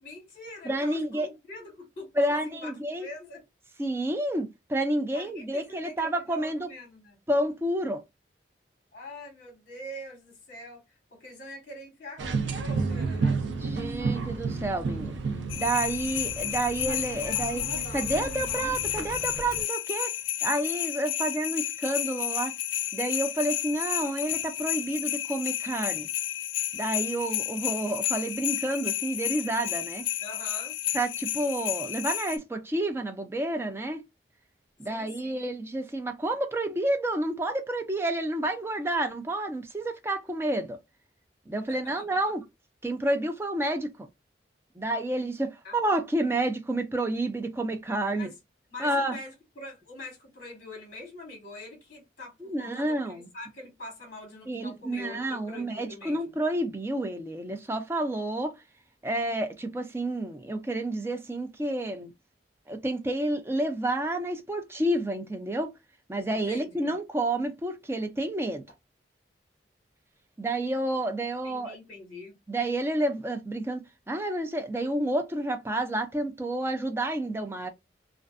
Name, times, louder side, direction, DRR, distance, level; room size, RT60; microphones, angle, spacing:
voice 1, 0.0-3.4 5.1-7.2 8.9-10.8 11.1-13.4 17.3-17.8 30.2-30.8 34.9-35.5 41.7-42.1 45.6-45.7 48.1-48.3 48.7-56.4 66.4-67.0 71.4-72.4, left 1 dB, 45° left, 1.1 m, -44 dB
voice 2, 0.7-1.3 2.2-3.1 3.8-6.7 7.3-8.0 13.6-15.2 15.5-17.6 17.9-20.1 20.4-22.5 22.9-26.1 26.7-30.1 30.9-34.0 34.8-40.8 41.5-42.4 42.8-43.9 44.8-48.3 48.8-49.2 52.4-53.3 54.5-58.5 59.0-62.1 62.7-65.7 66.1-68.6 70.4-71.8 72.5-77.7, right 1 dB, 15° right, 0.4 m, -29 dB
sound 1, 12.2-19.6, right 4 dB, 80° right, 0.5 m, -32 dB
sound 2, 15.5-32.4, left 13 dB, 85° left, 0.3 m, -32 dB
2.4 x 2.4 x 2.3 m
head